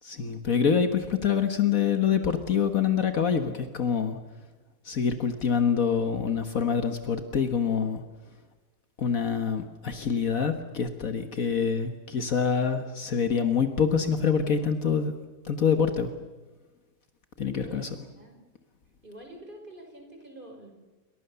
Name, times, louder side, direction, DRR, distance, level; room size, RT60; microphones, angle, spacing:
voice 1, 0.0-4.2 4.8-8.0 9.0-15.1 15.4-16.1 17.4-17.9, left 6 dB, 65° left, 7 dB, 1.8 m, -26 dB
voice 2, 17.6-18.5 19.0-20.7, right 1 dB, 35° right, 3 dB, 5.5 m, -46 dB
28.0 x 24.5 x 7.0 m, 1.2 s
omnidirectional pair, 1.6 m